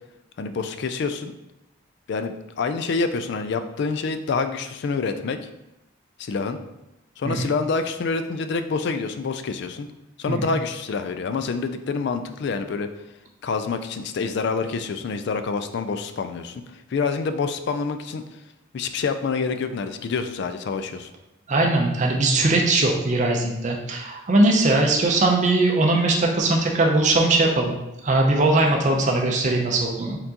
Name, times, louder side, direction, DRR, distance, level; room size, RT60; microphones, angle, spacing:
voice 1, 0.4-1.3 2.1-5.5 6.2-6.6 7.2-9.9 10.2-12.9 13.4-18.2 18.7-21.1, left 4 dB, 55° left, 9 dB, 0.3 m, -27 dB
voice 2, 21.5-27.7 28.0-30.2, right 2 dB, 35° right, 1 dB, 0.5 m, -20 dB
4.4 x 3.8 x 2.8 m, 0.95 s
head